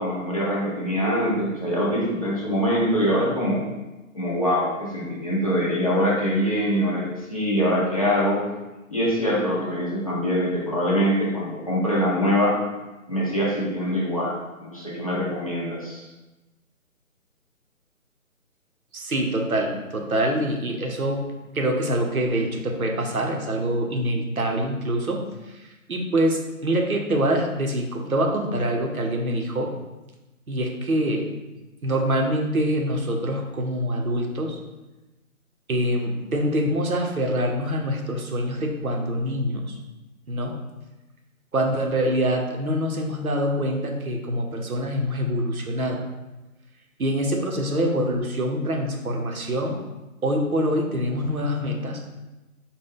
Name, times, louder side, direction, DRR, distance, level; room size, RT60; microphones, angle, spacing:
voice 1, 0.0-3.6 4.1-8.4 8.9-12.6 13.1-16.0, equal, 25° left, -7 dB, 0.6 m, -24 dB
voice 2, 18.9-21.2 21.5-25.6 25.9-29.7 30.5-31.3 31.8-34.6 35.7-39.8 40.3-40.6 41.5-46.0 47.0-49.8 50.2-52.0, right 1 dB, 85° right, 2 dB, 0.8 m, -25 dB
4.4 x 2.2 x 3.5 m, 1.1 s
figure-of-eight pair, 150°, 42 cm